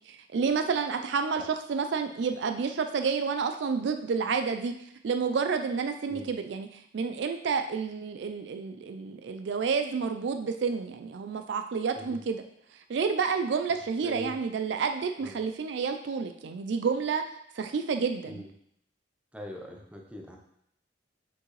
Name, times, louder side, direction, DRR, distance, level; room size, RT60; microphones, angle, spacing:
voice 1, 0.1-1.4 1.7-4.7 5.0-6.7 6.9-12.4 12.9-17.2 17.5-18.4, right 5 dB, 60° right, 7 dB, 0.4 m, -29 dB
voice 2, 14.0-14.4 15.2-15.4 18.3-18.5 19.3-20.4, left 1 dB, 5° right, 0 dB, 0.7 m, -42 dB
6.2 x 5.2 x 3.1 m, 0.73 s
head